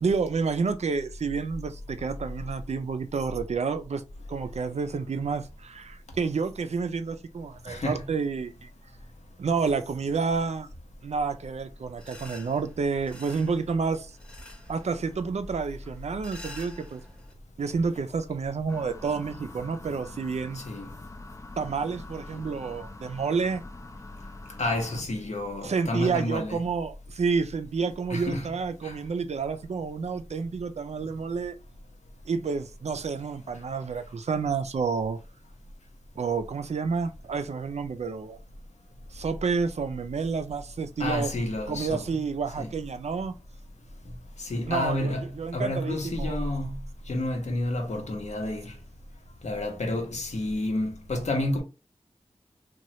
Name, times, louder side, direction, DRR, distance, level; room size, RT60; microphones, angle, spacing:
voice 1, 0.0-4.0 4.3-8.7 9.4-10.7 11.0-14.1 14.7-17.0 17.6-20.6 21.6-23.6 25.6-31.5 32.3-35.2 36.2-38.4 39.1-41.3 41.7-43.3 44.7-46.4, right 5 dB, 75° right, 0.4 m, -29 dB
voice 2, 7.7-8.1 20.5-20.9 22.3-22.4 24.6-26.6 28.1-28.5 28.8-29.0 41.0-42.2 42.6-42.7 44.4-46.8 47.1-48.7 49.4-51.6, left 1 dB, 90° left, 0.8 m, -30 dB
sound 1, 12.0-17.3, left 1 dB, 10° left, 0.8 m, -48 dB
sound 2, 18.7-25.0, left 2 dB, 25° left, 0.3 m, -45 dB
3.0 x 2.3 x 2.8 m
wide cardioid pair, 65°, 11 cm